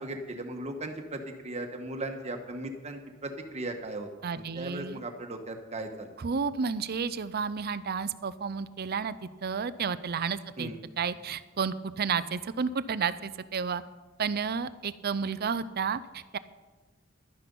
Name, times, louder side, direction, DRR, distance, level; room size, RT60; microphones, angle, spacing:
voice 1, 0.0-4.1 4.3-6.1 10.6-10.8, right 1 dB, 35° right, 4 dB, 1.3 m, -37 dB
voice 2, 4.2-5.0 6.2-9.1 9.4-10.7 11.0-13.8 14.2-16.4, right 6 dB, 50° right, 15 dB, 0.5 m, -31 dB
12.0 x 10.0 x 5.4 m, 1.3 s
head